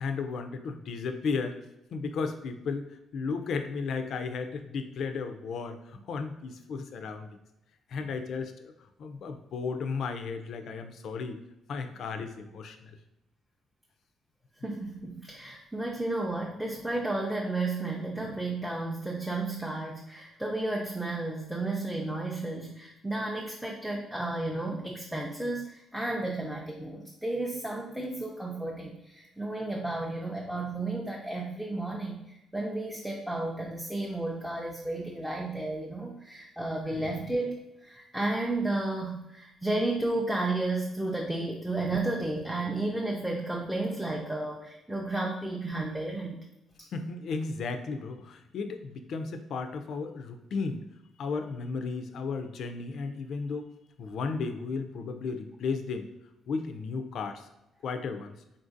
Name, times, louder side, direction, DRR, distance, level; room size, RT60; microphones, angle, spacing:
voice 1, 0.0-1.6 1.9-2.9 3.1-7.3 7.9-8.7 9.0-11.4 11.7-13.0 36.9-37.1 46.9-50.8 51.2-53.7 54.0-56.1 56.5-57.5 57.8-58.3, left 4 dB, 65° left, 7 dB, 0.3 m, -34 dB
voice 2, 14.6-46.4, right 2 dB, 5° right, -2 dB, 0.4 m, -32 dB
3.7 x 2.5 x 2.5 m, 0.89 s
cardioid pair, 90°, 0 cm